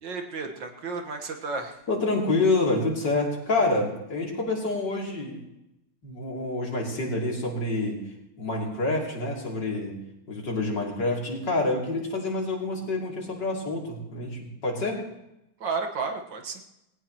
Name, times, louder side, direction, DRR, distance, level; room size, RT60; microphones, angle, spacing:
voice 1, 0.0-1.8 15.6-16.6, right 4 dB, 85° right, 4 dB, 2.3 m, -32 dB
voice 2, 1.9-5.4 6.0-8.0 8.4-10.0 10.3-15.0, left 2 dB, 75° left, -2 dB, 3.8 m, -27 dB
18.5 x 18.0 x 3.1 m, 0.88 s
omnidirectional pair, 1.9 m